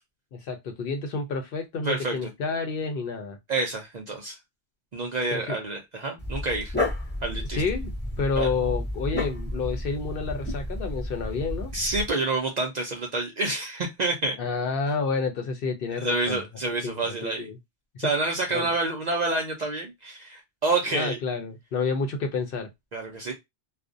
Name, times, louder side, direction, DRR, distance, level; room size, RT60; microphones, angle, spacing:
voice 1, 0.3-3.4 5.3-5.6 7.5-11.7 14.4-17.6 18.0-18.1 18.5-18.7 20.9-22.7, left 4 dB, 60° left, 0.7 m, -30 dB
voice 2, 1.8-2.3 3.5-4.4 4.9-6.7 7.2-7.6 8.4-8.5 11.7-14.4 15.9-17.5 18.0-21.2 22.9-23.3, right 3 dB, 50° right, 0.5 m, -28 dB
Dog, 6.2-12.1, left 1 dB, 10° left, 0.5 m, -31 dB
2.4 x 2.1 x 2.4 m
omnidirectional pair, 1.2 m